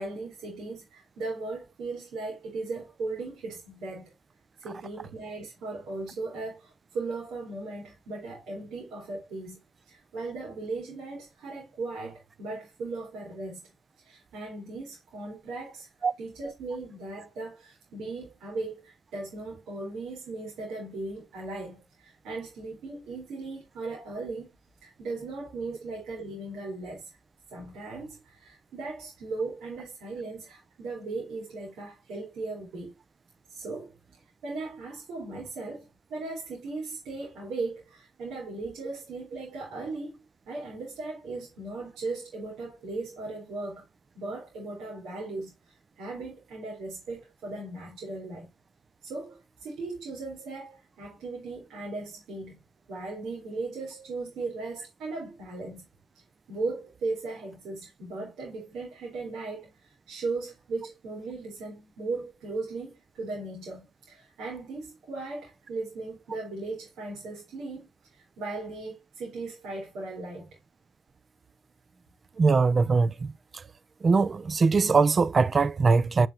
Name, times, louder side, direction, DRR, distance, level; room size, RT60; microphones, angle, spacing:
voice 1, 0.0-4.1 4.6-9.6 9.9-13.6 14.0-15.9 16.2-24.5 24.8-27.2 27.5-32.9 33.5-40.2 40.5-43.8 44.1-48.5 49.0-52.6 52.9-55.9 56.5-70.6, right 3 dB, 85° right, 4.0 m, -37 dB
voice 2, 72.4-73.3 74.0-76.3, right 4 dB, 45° right, 0.5 m, -21 dB
8.8 x 6.1 x 2.8 m
cardioid pair, 65°, 0 cm